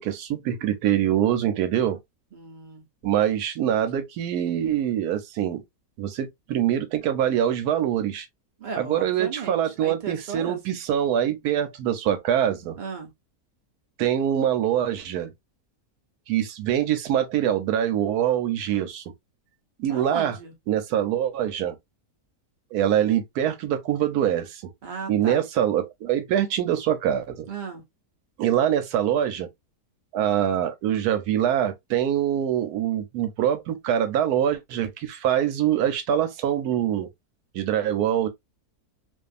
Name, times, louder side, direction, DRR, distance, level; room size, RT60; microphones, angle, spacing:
voice 1, 0.0-2.0 3.0-5.6 6.0-8.3 8.8-12.8 14.0-15.3 16.3-19.0 19.8-20.4 20.7-21.8 22.7-24.7 25.1-27.5 28.4-29.5 30.1-37.1 37.5-38.3, right 10 dB, 85° right, 1.1 m, -24 dB
voice 2, 2.3-2.8 8.6-10.6 12.8-13.1 19.9-20.5 24.8-25.4 27.5-27.8, right 5 dB, 45° right, 0.7 m, -35 dB
2.6 x 2.4 x 2.4 m
omnidirectional pair, 1.6 m